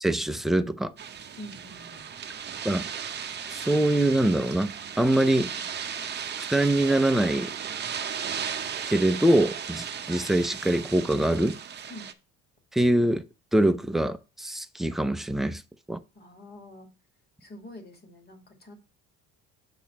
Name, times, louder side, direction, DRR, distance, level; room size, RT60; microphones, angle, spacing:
voice 1, 0.0-0.9 2.6-2.9 3.5-5.5 6.5-7.5 8.9-11.6 12.7-13.2 13.5-15.6 15.9-16.0, right 1 dB, ahead, 0.5 m, -24 dB
sound 1, 1.0-12.1, right 7 dB, 30° right, 0.8 m, -36 dB
voice 2, 1.4-2.1 11.9-12.1 16.1-16.9 17.4-18.7, left 1 dB, 30° left, 2.4 m, -45 dB
6.9 x 4.1 x 5.8 m
cardioid pair, 115°, 33 cm